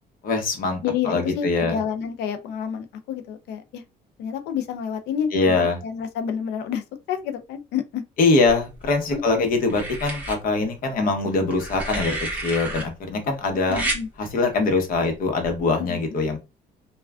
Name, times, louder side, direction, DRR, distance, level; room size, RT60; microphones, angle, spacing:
voice 1, 0.2-0.8 1.1-1.8 5.3-5.8 8.2-12.2 12.4-13.8 14.2-16.4, left 3 dB, 55° left, 0.9 m, -22 dB
voice 2, 0.8-3.8 4.2-8.0 9.1-9.4 13.7-14.1 15.8-16.0, left 8 dB, 80° left, 0.5 m, -29 dB
sound 1, 8.5-9.1 9.7-10.4 11.5-12.8 13.7-14.0 15.4-15.6, right 1 dB, 10° right, 1.2 m, -30 dB
3.2 x 2.3 x 2.3 m
cardioid pair, 110°, 17 cm